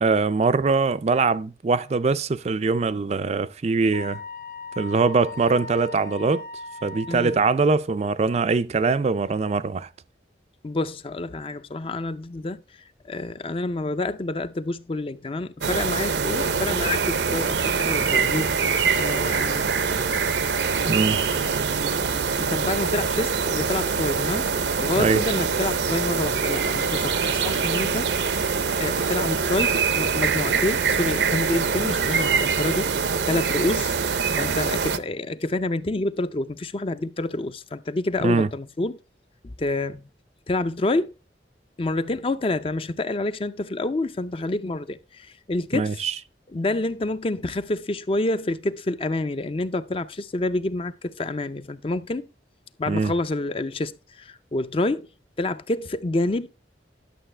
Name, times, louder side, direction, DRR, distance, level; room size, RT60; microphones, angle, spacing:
voice 1, 0.0-4.2 4.8-6.5 6.8-9.9 20.9-21.2 25.0-25.2 38.2-38.5 45.7-46.1 52.9-53.1, right 4 dB, 40° right, 0.4 m, -22 dB
Wind instrument woodwind instrument, 3.9-7.4, left 3 dB, 50° left, 1.5 m, -38 dB
voice 2, 10.6-12.6 13.0-18.5 19.0-19.7 21.8-22.0 22.3-24.5 24.8-28.1 28.8-33.9 34.3-39.0 39.4-40.1 40.5-41.1 41.8-46.0 46.5-52.3 52.8-55.1 55.4-56.5, left 2 dB, 30° left, 0.5 m, -28 dB
sound 1, 15.6-35.0, right 5 dB, 75° right, 0.7 m, -24 dB
11.5 x 6.7 x 3.3 m
head